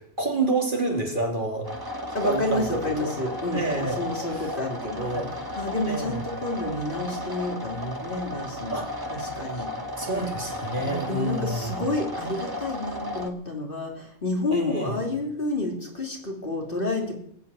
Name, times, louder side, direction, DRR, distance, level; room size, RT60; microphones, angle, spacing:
voice 1, 0.2-1.8 2.2-3.1 3.5-4.5 5.0-5.3 5.8-6.3 8.7-8.9 9.9-11.8 14.5-15.0, right 2 dB, 40° right, 1 dB, 2.8 m, -29 dB
sound 1, 1.6-13.3, left 1 dB, 20° right, 1.5 m, -34 dB
voice 2, 2.1-3.6 4.0-5.2 5.6-8.8 9.1-9.7 10.1-10.3 10.8-17.1, left 2 dB, 45° left, 1 dB, 3.2 m, -29 dB
18.5 x 8.6 x 8.4 m, 0.69 s
omnidirectional pair, 1.3 m